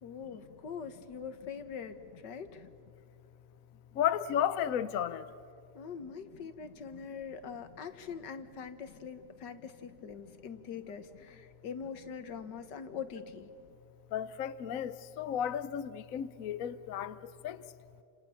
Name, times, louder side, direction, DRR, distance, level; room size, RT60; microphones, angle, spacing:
voice 1, 0.0-2.7 5.7-13.5, left 6 dB, 85° left, 2.0 m, -43 dB
voice 2, 4.0-5.2 14.1-17.1 17.4-17.6, left 9 dB, 60° left, 1.1 m, -33 dB
29.5 x 26.5 x 7.1 m
omnidirectional pair, 1.8 m